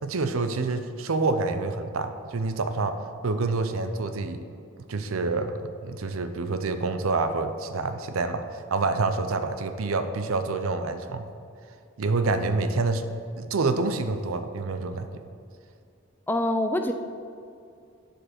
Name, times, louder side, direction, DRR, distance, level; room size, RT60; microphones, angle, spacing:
voice 1, 0.0-3.0 3.2-4.4 4.9-11.3 12.0-13.0 13.4-15.1, right 3 dB, 90° right, 9 dB, 0.6 m, -27 dB
voice 2, 16.3-16.9, left 1 dB, 10° left, 6 dB, 0.3 m, -25 dB
11.0 x 5.3 x 4.3 m, 2.5 s
head